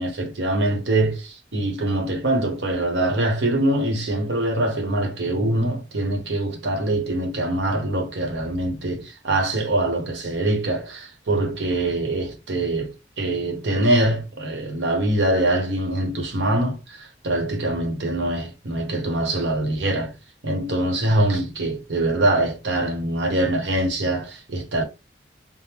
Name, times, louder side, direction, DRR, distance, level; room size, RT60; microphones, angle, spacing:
voice 1, 0.0-20.1 20.4-24.8, right 1 dB, 85° right, 0.9 m, -23 dB
3.5 x 2.0 x 2.9 m
head